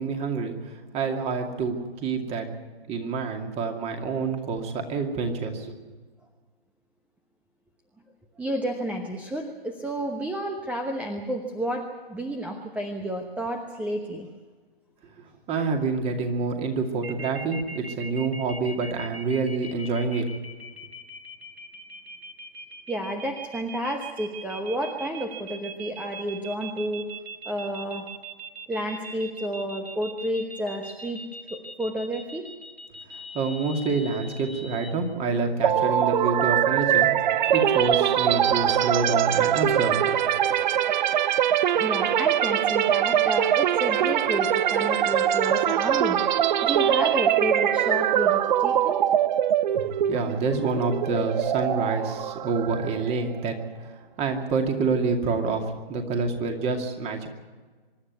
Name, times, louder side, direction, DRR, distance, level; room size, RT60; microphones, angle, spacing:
voice 1, 0.0-2.5 2.9-5.7 15.5-20.3 33.1-37.1 37.5-40.2 50.1-53.9 54.2-57.3, right 4 dB, 20° right, 4 dB, 2.4 m, -27 dB
voice 2, 8.4-14.3 22.9-27.0 27.4-28.0 28.7-31.2 31.8-32.5 41.8-49.0, right 1 dB, 5° right, 4 dB, 1.0 m, -31 dB
sound 1, 17.0-34.9, right 2 dB, 90° right, 3.0 m, -41 dB
sound 2, 35.6-53.4, right 10 dB, 50° right, 0.7 m, -23 dB
25.0 x 11.5 x 9.5 m, 1.4 s
hypercardioid pair, 140°, 30 cm